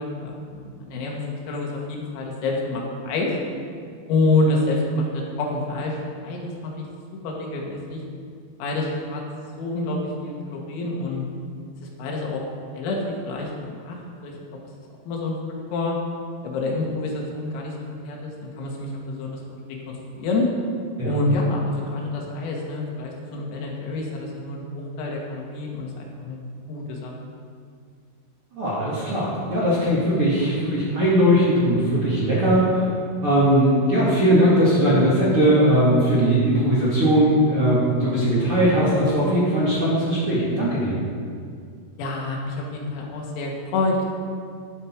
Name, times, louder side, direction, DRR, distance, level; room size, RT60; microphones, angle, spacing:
voice 1, 0.0-3.3 4.1-6.9 7.2-8.0 8.6-9.2 9.6-11.2 11.8-12.4 12.7-14.0 14.2-14.3 15.1-15.4 15.7-16.0 16.4-17.7 18.0-19.4 19.9-20.5 21.0-26.4 26.7-27.1 37.9-38.1 42.0-44.1, left 2 dB, 85° left, -1 dB, 4.6 m, -27 dB
voice 2, 28.5-41.0, equal, 40° right, -8 dB, 2.1 m, -19 dB
12.5 x 12.0 x 4.7 m, 2.2 s
omnidirectional pair, 6.0 m